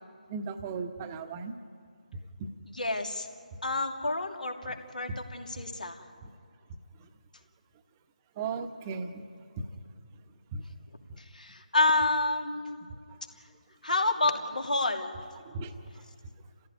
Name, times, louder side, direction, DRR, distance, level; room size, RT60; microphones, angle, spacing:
voice 1, 0.3-1.5 8.4-9.2 10.5-10.6 15.4-15.7, right 5 dB, 20° right, 7 dB, 1.2 m, -36 dB
voice 2, 2.7-3.3 3.6-6.1 11.2-12.8 13.8-15.2, left 2 dB, 75° left, 3 dB, 2.9 m, -29 dB
29.0 x 15.5 x 9.5 m, 2.1 s
figure-of-eight pair, 150°, 4 cm